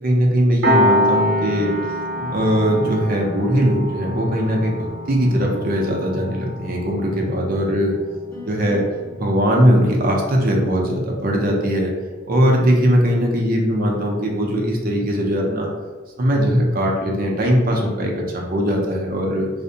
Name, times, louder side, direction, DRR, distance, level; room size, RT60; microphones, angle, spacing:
voice 1, 0.0-1.7 2.3-7.9 8.4-8.8 9.1-11.9 12.3-15.7 16.2-19.5, equal, 50° right, 0 dB, 0.5 m, -20 dB
Piano, 0.6-11.7, equal, 85° right, 0.7 m, -27 dB
sound 1, 1.1-9.1, left 2 dB, 15° left, 1.0 m, -35 dB
2.5 x 2.1 x 2.7 m, 1.4 s
head